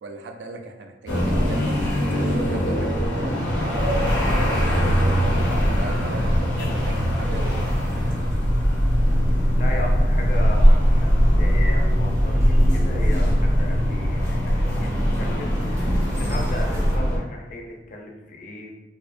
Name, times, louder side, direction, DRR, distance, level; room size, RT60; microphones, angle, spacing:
voice 1, 0.0-1.8 2.3-8.3, right 2 dB, 80° right, 5 dB, 0.3 m, -39 dB
sound 1, 1.0-17.2, equal, 85° left, 0.7 m, -24 dB
sound 2, 3.7-17.0, equal, 15° right, 0.5 m, -22 dB
voice 2, 9.3-15.6 16.1-18.8, left 1 dB, 45° left, 1 dB, 0.4 m, -36 dB
2.5 x 2.0 x 2.4 m, 1.1 s
head